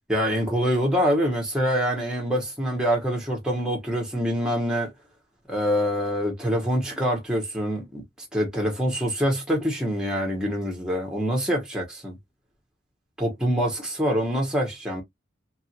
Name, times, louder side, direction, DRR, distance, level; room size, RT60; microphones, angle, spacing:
voice 1, 0.1-4.9 5.5-8.0 8.3-12.2 13.2-15.0, equal, 5° right, 0.9 m, -25 dB
2.9 x 2.4 x 2.7 m
head